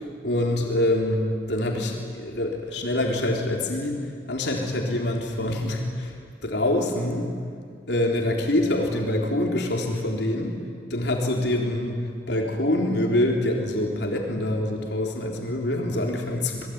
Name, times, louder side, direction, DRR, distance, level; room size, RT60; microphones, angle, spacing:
voice 1, 0.2-1.2 1.5-6.1 6.4-7.3 7.9-10.6 10.9-16.7, left 1 dB, 75° left, 0 dB, 3.9 m, -25 dB
28.5 x 21.5 x 9.6 m, 2.1 s
head